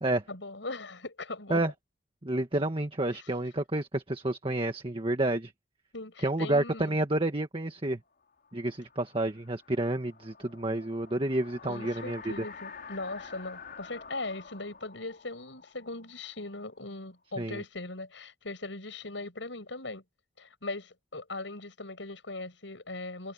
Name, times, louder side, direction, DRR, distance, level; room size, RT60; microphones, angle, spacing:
voice 1, 0.3-1.6 3.1-3.3 5.9-7.0 11.7-20.0 20.4-23.3, left 2 dB, 80° left, 6.4 m, -39 dB
voice 2, 2.2-5.5 6.2-8.0 8.5-12.3 17.4-17.6, right 1 dB, 30° right, 1.5 m, -29 dB
sound 1, 8.3-17.0, left 5 dB, 55° left, 4.5 m, -49 dB
head